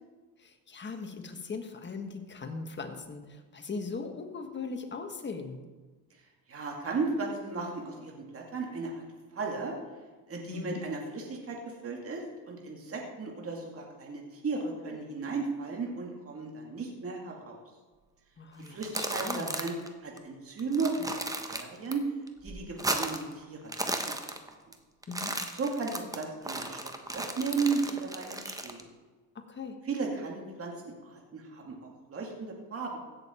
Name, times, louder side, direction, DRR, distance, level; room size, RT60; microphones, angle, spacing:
voice 1, 0.4-5.6 10.5-10.8 18.4-19.6 25.1-25.3 29.3-29.8, left 4 dB, 30° left, 5 dB, 1.5 m, -39 dB
voice 2, 6.5-9.0 9.3-9.8 10.3-17.6 18.6-19.8 20.0-21.1 21.5-22.0 22.4-24.1 25.5-26.8 27.1-28.8 29.8-33.0, right 4 dB, 35° right, 0 dB, 2.3 m, -35 dB
sound 1, 18.7-19.9 20.2-20.3 20.6-21.9 22.3-23.3 23.6-24.7 25.0-28.8, right 2 dB, 10° right, 1.1 m, -35 dB
16.0 x 6.8 x 4.4 m, 1.3 s
cardioid pair, 100°, 37 cm